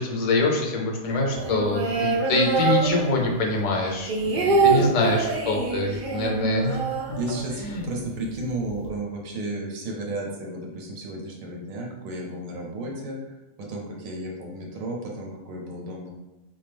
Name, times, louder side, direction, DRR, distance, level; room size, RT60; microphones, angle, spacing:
voice 1, 0.0-4.1 4.4-6.8 7.6-7.9, left 2 dB, 40° left, 0 dB, 0.5 m, -25 dB
sound 1, 1.3-3.5 3.8-7.7 8.0-8.1 8.4-8.9, right 4 dB, 50° right, 0.6 m, -25 dB
voice 2, 4.3-5.0 7.1-16.1, right 1 dB, 80° right, -1 dB, 1.2 m, -33 dB
3.6 x 2.6 x 3.4 m, 1.0 s
omnidirectional pair, 1.4 m